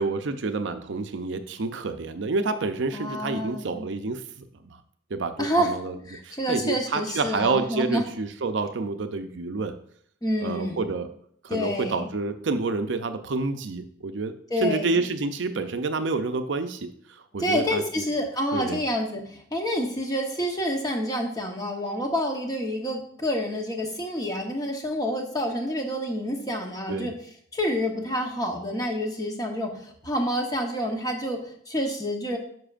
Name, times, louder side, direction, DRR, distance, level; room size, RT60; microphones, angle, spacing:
voice 1, 0.0-4.2 4.6-4.8 5.1-5.9 6.2-9.8 10.4-11.1 11.4-14.3 14.6-18.1 18.5-18.8 26.9-27.1, right 3 dB, 65° right, 8 dB, 0.5 m, -28 dB
voice 2, 2.9-3.8 5.4-5.7 6.1-8.0 10.2-10.9 11.5-12.1 14.5-15.0 17.4-27.1 27.5-32.4, equal, 20° left, 2 dB, 1.0 m, -28 dB
10.0 x 6.1 x 2.5 m, 0.63 s
head